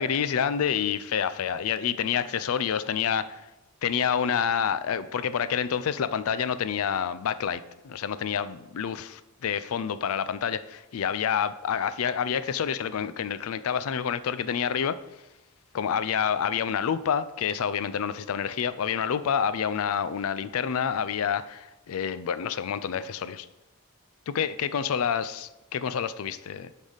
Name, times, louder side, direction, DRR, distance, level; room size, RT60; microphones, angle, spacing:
voice 1, 0.0-3.2 3.8-15.0 15.7-23.5 24.3-26.7, left 7 dB, 70° left, 0.4 m, -28 dB
6.3 x 5.4 x 5.0 m
head